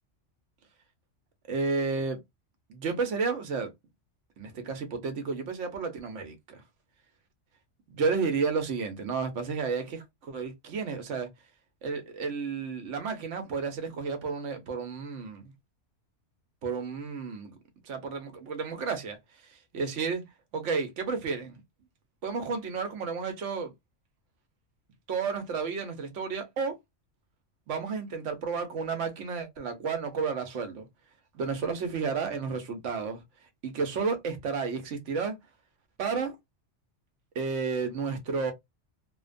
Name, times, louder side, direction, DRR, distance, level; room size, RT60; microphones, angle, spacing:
voice 1, 1.5-2.2 2.7-3.7 4.4-6.6 7.9-11.3 11.8-15.5 16.6-17.6 17.8-19.2 19.5-20.2 20.5-21.6 22.2-23.7 25.1-26.8 27.7-30.9 31.3-33.2 33.6-35.4 36.0-36.4 37.3-38.5, right 5 dB, 80° right, 1.1 m, -32 dB
2.8 x 2.2 x 2.5 m
omnidirectional pair, 1.2 m